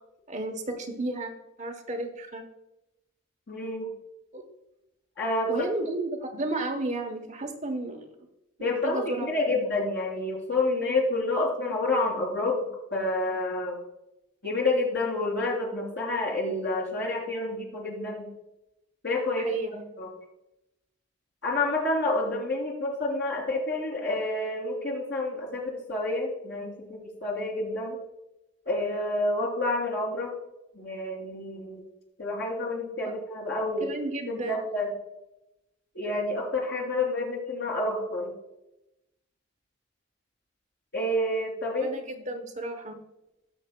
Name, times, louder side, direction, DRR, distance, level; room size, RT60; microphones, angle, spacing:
voice 1, 0.3-1.3 1.6-2.4 4.3-4.4 5.5-8.1 8.6-9.3 19.4-19.8 33.0-33.1 33.8-34.6 41.8-43.0, right 2 dB, 35° right, 4 dB, 1.0 m, -33 dB
voice 2, 3.5-3.9 5.1-5.5 8.6-12.6 12.9-13.8 14.4-18.3 19.0-19.5 20.0-20.1 21.4-28.0 28.6-30.3 30.7-31.8 32.2-33.9 34.5-34.9 35.9-38.3 40.9-41.9, left 2 dB, 60° left, -2 dB, 3.1 m, -29 dB
17.5 x 6.6 x 2.2 m, 0.92 s
head